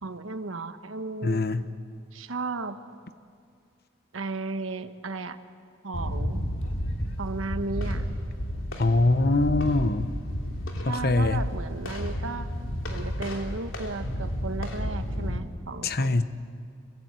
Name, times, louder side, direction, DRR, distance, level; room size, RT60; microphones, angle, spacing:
voice 1, 0.0-1.5 2.1-2.8 4.1-5.4 5.8-6.5 7.2-8.1 10.9-12.5 12.9-16.1, right 3 dB, 90° right, 9 dB, 1.4 m, -34 dB
voice 2, 1.2-1.7 8.8-10.1 10.9-11.4 15.8-16.2, left 2 dB, 50° left, 11 dB, 1.0 m, -23 dB
sound 1, 5.9-15.4, equal, 85° left, 3.1 m, -32 dB
26.5 x 23.0 x 8.2 m, 2.3 s
head